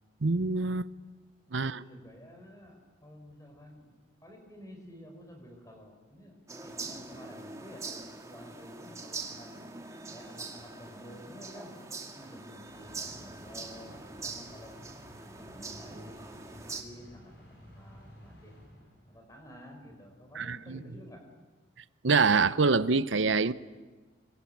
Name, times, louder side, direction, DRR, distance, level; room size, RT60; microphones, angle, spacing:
voice 1, 0.2-0.9 1.5-1.8 20.4-20.8 22.0-23.5, right 4 dB, 80° right, 0.8 m, -25 dB
voice 2, 1.5-4.0 4.2-9.5 10.1-14.8 15.4-18.6 19.1-21.3, equal, 15° left, 5.3 m, -51 dB
sound 1, 6.5-16.8, right 3 dB, 15° right, 2.0 m, -43 dB
sound 2, 12.6-19.4, equal, 60° left, 7.0 m, -53 dB
26.0 x 23.5 x 9.3 m
head